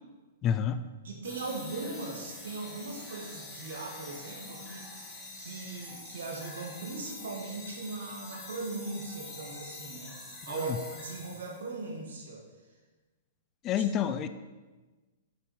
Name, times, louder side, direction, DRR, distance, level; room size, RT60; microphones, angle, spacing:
voice 1, 0.4-0.8 10.5-10.8 13.6-14.3, left 8 dB, 30° left, 11 dB, 0.4 m, -29 dB
voice 2, 1.0-12.5 13.8-13.9, right 3 dB, 75° right, 0 dB, 2.0 m, -39 dB
sound 1, 1.2-11.8, left 2 dB, 10° left, 2.3 m, -46 dB
7.3 x 5.5 x 4.9 m, 1.2 s
hypercardioid pair, 115°, 0 cm